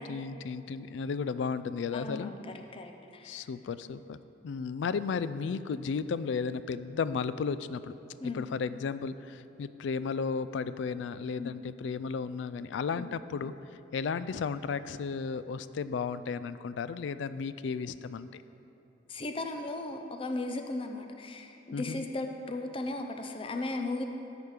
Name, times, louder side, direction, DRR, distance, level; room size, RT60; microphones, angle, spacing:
voice 1, 0.0-2.3 3.2-4.2 4.4-7.9 8.2-13.5 13.9-18.4 21.7-22.0, left 5 dB, 75° left, 14 dB, 0.3 m, -34 dB
voice 2, 1.9-3.4 8.2-8.5 11.4-11.6 12.9-13.1 19.1-24.0, left 2 dB, 30° left, 5 dB, 0.6 m, -36 dB
13.0 x 5.1 x 4.8 m, 2.8 s
head